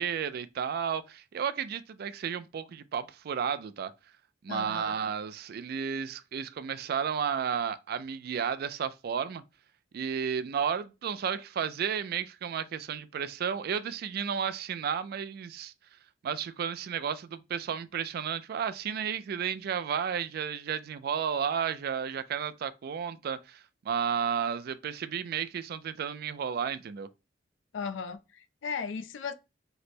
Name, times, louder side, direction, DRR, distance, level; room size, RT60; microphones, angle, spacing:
voice 1, 0.0-3.9 4.4-9.4 9.9-15.7 16.2-27.1, right 7 dB, 55° right, 0.3 m, -32 dB
voice 2, 4.5-5.0 27.7-29.3, left 5 dB, 90° left, 0.4 m, -36 dB
3.1 x 2.0 x 4.2 m
head